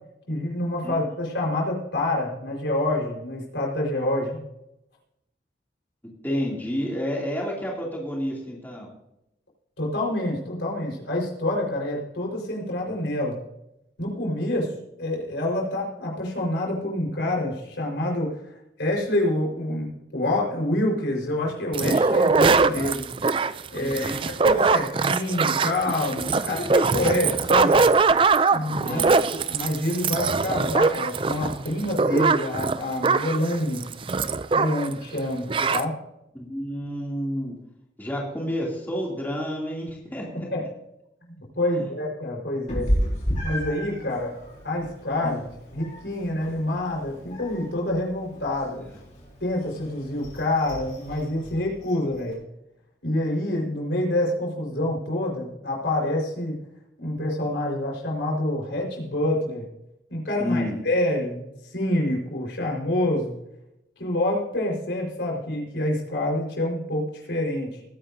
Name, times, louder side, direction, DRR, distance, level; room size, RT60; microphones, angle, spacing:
voice 1, 0.3-4.4 9.8-13.4 14.0-14.7 15.0-18.4 18.8-23.1 23.7-27.8 28.5-29.0 29.3-33.8 34.5-35.9 40.5-40.6 41.3-42.9 43.4-44.3 44.6-45.4 45.7-48.9 49.4-52.3 53.0-56.6 57.0-59.6 60.1-63.3 64.0-67.7, left 1 dB, 85° left, -2 dB, 4.6 m, -27 dB
voice 2, 6.2-8.9 23.8-24.2 28.8-29.1 36.3-37.5 38.0-40.5 41.7-41.9 45.2-45.3 60.4-60.8, equal, 10° left, -3 dB, 2.7 m, -30 dB
sound 1, 21.7-34.9 35.2-35.3 35.5-35.8, right 4 dB, 30° right, 0.4 m, -22 dB
Meow, 42.7-52.3, equal, 40° left, 5.0 m, -33 dB
20.0 x 10.0 x 2.7 m, 0.85 s
head